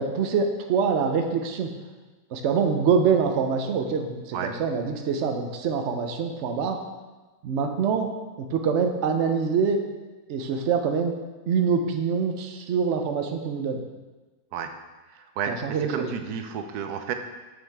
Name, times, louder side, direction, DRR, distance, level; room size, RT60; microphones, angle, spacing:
voice 1, 0.0-1.7 2.3-6.8 7.4-8.1 8.4-9.8 10.3-11.2 11.5-13.8 15.5-16.1, right 6 dB, 60° right, 4 dB, 0.9 m, -25 dB
voice 2, 15.1-17.1, right 7 dB, 80° right, 7 dB, 1.2 m, -32 dB
7.3 x 6.2 x 3.5 m, 1.2 s
omnidirectional pair, 1.6 m